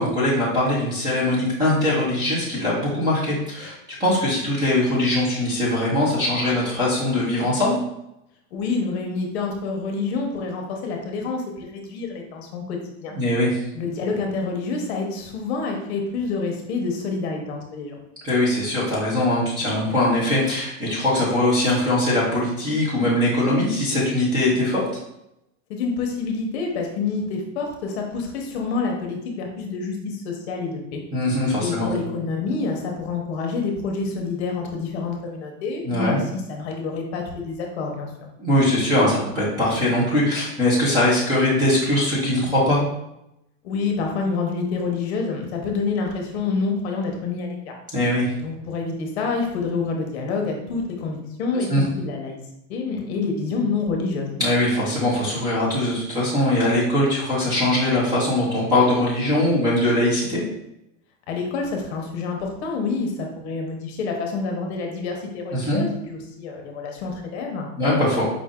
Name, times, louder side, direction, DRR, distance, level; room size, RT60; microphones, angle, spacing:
voice 1, 0.0-7.8 13.1-13.6 18.2-24.8 31.1-31.9 35.8-36.2 38.4-42.8 47.9-48.3 51.7-51.8 54.4-60.4 65.5-65.8 67.8-68.2, left 1 dB, 10° right, -7 dB, 0.6 m, -21 dB
voice 2, 8.5-13.1 13.7-18.0 25.7-31.0 31.6-38.1 43.6-47.7 48.4-52.4 52.7-54.3 61.3-67.7, left 4 dB, 50° left, 2 dB, 0.9 m, -27 dB
5.0 x 2.6 x 3.6 m, 0.84 s
supercardioid pair, 175°, 42 cm